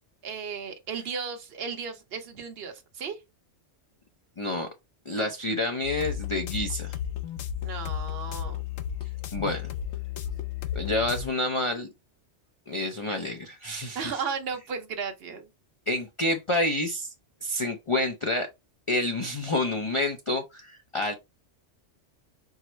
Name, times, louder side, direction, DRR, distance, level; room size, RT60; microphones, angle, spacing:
voice 1, 0.2-3.2 5.1-5.3 7.6-8.6 13.9-15.5, right 6 dB, 60° right, 1.1 m, -35 dB
voice 2, 4.4-4.7 5.1-7.0 9.3-9.7 10.7-11.9 12.7-14.1 15.9-17.1 17.4-18.5 18.9-21.1, left 1 dB, 40° left, 0.5 m, -28 dB
sound 1, 5.8-11.3, left 10 dB, 75° left, 0.9 m, -33 dB
4.7 x 2.0 x 4.3 m
omnidirectional pair, 1.2 m